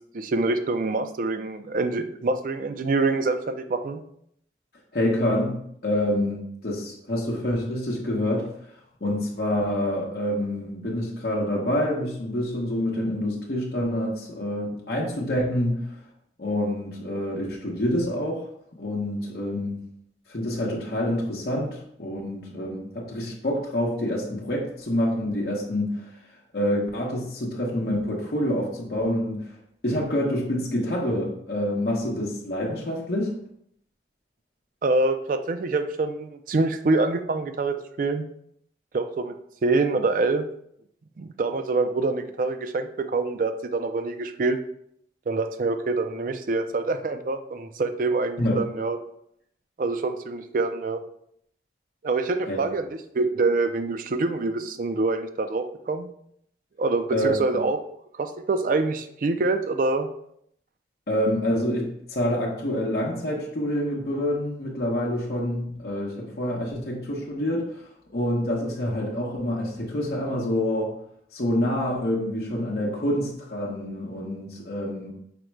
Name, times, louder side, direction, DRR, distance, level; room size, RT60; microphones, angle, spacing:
voice 1, 0.1-4.0 34.8-38.2 38.9-39.3 39.6-40.4 41.2-44.6 45.3-49.0 49.8-51.0 52.0-52.9 53.1-56.1 56.8-57.8 58.2-60.1, right 3 dB, 50° right, 8 dB, 0.3 m, -25 dB
voice 2, 4.9-8.5 9.0-15.9 16.4-19.8 20.3-26.1 26.5-29.5 29.8-33.3 48.4-48.6 52.5-52.6 57.1-57.4 61.1-70.9 71.3-75.1, left 1 dB, 60° left, -3 dB, 0.8 m, -27 dB
5.0 x 2.1 x 4.5 m, 0.70 s
head